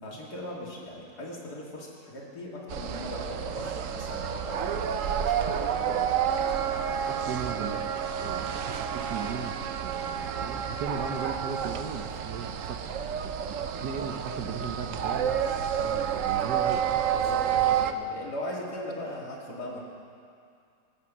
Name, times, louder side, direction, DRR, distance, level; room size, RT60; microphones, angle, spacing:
voice 1, 0.0-6.2 17.1-19.8, equal, 75° left, -4 dB, 3.0 m, -39 dB
sound 1, 2.7-17.9, right 8 dB, 65° right, 0.9 m, -29 dB
voice 2, 7.1-7.8 8.2-12.8 13.5-15.4 15.8-17.0, right 5 dB, 85° right, 5 dB, 1.5 m, -37 dB
23.5 x 8.5 x 6.1 m, 2.4 s
omnidirectional pair, 1.7 m